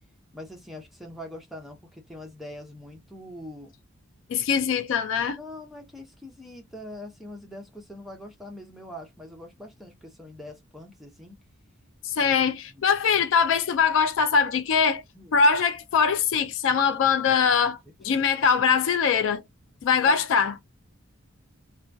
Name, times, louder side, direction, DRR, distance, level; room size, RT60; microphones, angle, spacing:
voice 1, 0.3-3.7 5.4-11.4 12.2-12.4 12.7-12.8 15.1-15.4 18.1-18.3 20.0-20.2, left 1 dB, ahead, 0.6 m, -43 dB
voice 2, 4.3-5.4 12.0-15.0 15.3-17.8 18.0-19.4 19.8-20.5, left 6 dB, 60° left, 0.3 m, -22 dB
2.2 x 2.2 x 2.5 m
head